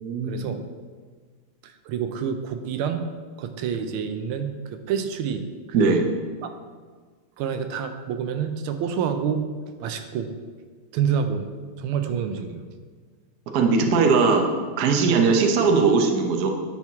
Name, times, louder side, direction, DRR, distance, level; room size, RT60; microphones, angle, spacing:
voice 1, 0.0-0.4 5.7-6.0 13.5-14.5 14.8-16.5, right 4 dB, 60° right, 3 dB, 1.1 m, -19 dB
voice 2, 1.9-3.0 3.4-5.9 6.4-6.5 7.4-9.5 9.8-10.3 10.9-11.5 11.8-12.6, right 7 dB, 80° right, 7 dB, 1.4 m, -28 dB
10.0 x 4.5 x 3.5 m, 1.5 s
omnidirectional pair, 2.3 m